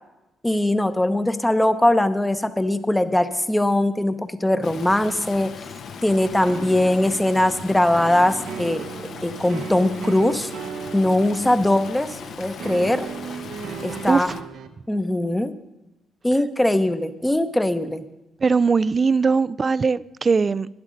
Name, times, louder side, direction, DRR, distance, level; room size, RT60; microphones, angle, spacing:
voice 1, 0.4-5.5 6.0-8.8 9.2-10.5 10.9-13.1 13.8-14.3 14.9-15.5 16.2-18.0, left 1 dB, 10° left, 12 dB, 0.8 m, -21 dB
Stream, 4.6-14.4, left 6 dB, 65° left, 0.9 m, -38 dB
sound 1, 6.4-14.7, right 7 dB, 75° right, 0.8 m, -36 dB
voice 2, 14.1-14.4 18.4-20.7, right 5 dB, 35° right, 19 dB, 0.3 m, -20 dB
12.5 x 10.5 x 5.2 m, 0.98 s
cardioid pair, 90°, 0 cm